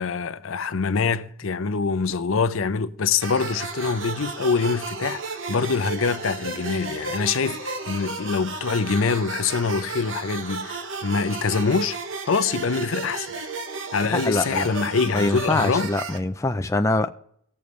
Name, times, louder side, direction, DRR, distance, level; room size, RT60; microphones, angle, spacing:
voice 1, 0.0-12.0 12.2-13.3 13.9-15.9, left 5 dB, 75° left, 0.6 m, -24 dB
sound 1, 3.2-16.2, right 4 dB, 65° right, 1.1 m, -33 dB
voice 2, 14.1-14.7 15.1-17.1, left 2 dB, 15° left, 0.4 m, -24 dB
18.5 x 7.0 x 3.2 m
head